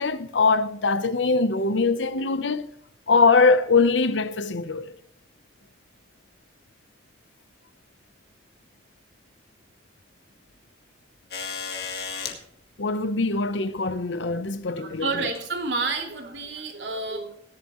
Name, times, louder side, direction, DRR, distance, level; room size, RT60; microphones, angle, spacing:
voice 1, 0.0-2.7 3.1-4.9 12.8-15.1, left 4 dB, 90° left, 0.9 m, -22 dB
sound 1, 11.3-12.4 13.8-13.9 15.2-15.5 16.4-16.5, left 6 dB, 60° left, 2.0 m, -33 dB
voice 2, 14.8-17.3, right 3 dB, 75° right, 2.9 m, -30 dB
17.5 x 11.0 x 3.1 m
head